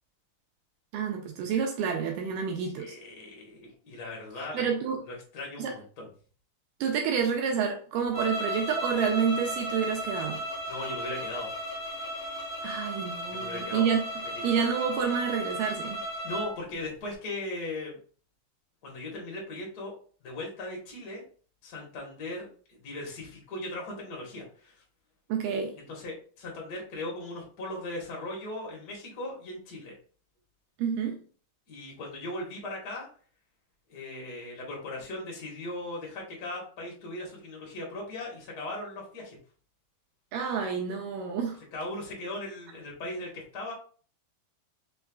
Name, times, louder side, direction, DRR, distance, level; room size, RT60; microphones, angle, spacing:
voice 1, 0.9-3.0 4.5-5.0 5.6-5.7 6.8-10.4 12.6-14.0 14.4-16.0 25.3-25.8 30.8-31.2 40.3-41.6, right 6 dB, 80° right, 2.0 m, -29 dB
voice 2, 2.7-4.6 5.1-6.1 10.7-11.5 13.3-13.9 14.2-14.4 16.2-18.0 18.8-19.9 20.2-21.2 21.6-24.8 25.8-29.9 31.7-33.1 33.9-39.4 41.7-43.7, left 2 dB, 75° left, 0.9 m, -38 dB
sound 1, 8.1-16.5, equal, 50° left, 1.2 m, -35 dB
5.4 x 3.4 x 2.3 m
omnidirectional pair, 4.2 m